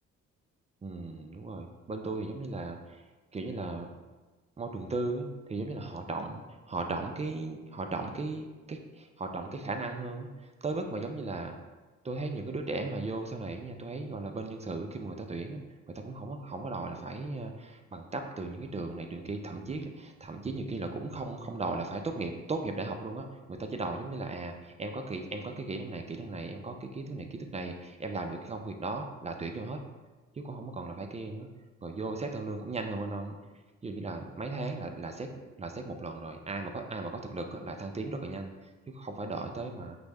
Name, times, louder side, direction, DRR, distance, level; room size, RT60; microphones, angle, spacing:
voice 1, 0.8-3.0 3.3-3.9 4.6-11.5 12.0-15.6 15.9-29.8 30.3-31.5 31.8-33.4 33.8-35.3 35.6-38.5 38.9-40.0, right 3 dB, 25° right, 4 dB, 0.4 m, -36 dB
5.9 x 2.1 x 3.3 m, 1.2 s
cardioid pair, 90°, 30 cm